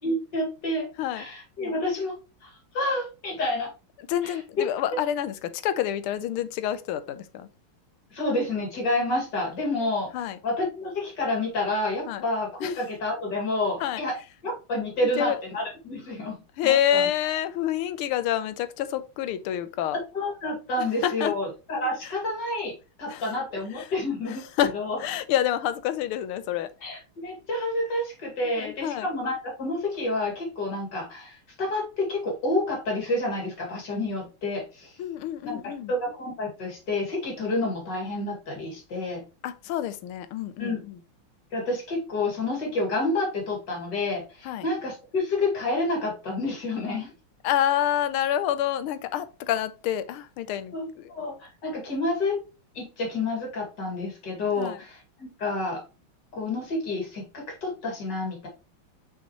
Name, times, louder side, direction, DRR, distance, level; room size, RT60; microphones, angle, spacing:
voice 1, 0.0-2.1 2.4-3.7 4.2-4.4 8.1-10.1 10.4-14.2 14.4-16.4 16.6-17.0 20.1-24.4 24.7-25.0 26.8-35.0 35.4-39.2 40.6-40.8 41.5-47.1 50.7-52.4 52.7-55.8 56.3-58.5, left 2 dB, 55° left, 2.9 m, -29 dB
voice 2, 4.1-7.5 9.8-10.4 12.1-12.2 12.6-12.8 13.8-14.0 15.2-15.4 16.6-20.0 20.8-21.3 23.1-23.3 23.8-23.9 24.3-24.7 25.0-26.7 28.6-29.1 35.0-35.9 39.4-41.0 44.4-44.7 47.4-51.1 51.9-52.0 54.6-54.8, left 11 dB, 85° left, 1.6 m, -28 dB
6.1 x 5.8 x 3.0 m
omnidirectional pair, 2.4 m